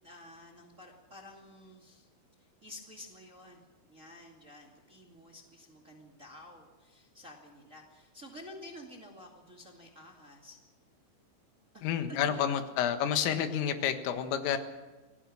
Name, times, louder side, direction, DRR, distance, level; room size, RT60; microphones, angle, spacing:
voice 1, 0.0-2.1 2.4-10.6 11.7-12.2, left 1 dB, 35° right, 0 dB, 1.2 m, -51 dB
voice 2, 11.8-14.6, left 9 dB, 85° left, 7 dB, 4.1 m, -29 dB
26.5 x 18.5 x 6.3 m, 1.2 s
omnidirectional pair, 5.8 m